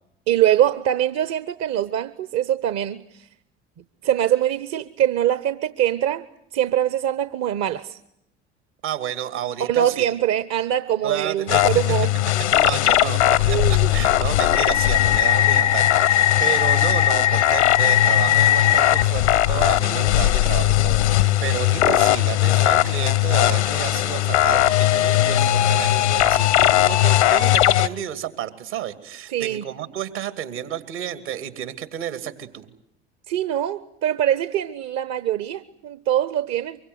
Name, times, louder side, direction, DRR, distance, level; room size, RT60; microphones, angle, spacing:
voice 1, 0.3-3.2 4.0-6.3 6.5-8.0 9.6-12.1 13.5-13.9 29.3-29.6 33.3-36.8, right 11 dB, 50° right, 1.0 m, -23 dB
voice 2, 8.8-10.1 11.0-12.0 12.5-32.7, right 10 dB, 70° right, 2.6 m, -31 dB
sound 1, 11.5-27.9, left 13 dB, 85° left, 1.0 m, -18 dB
24.5 x 23.5 x 9.5 m
hypercardioid pair, 60°, 34 cm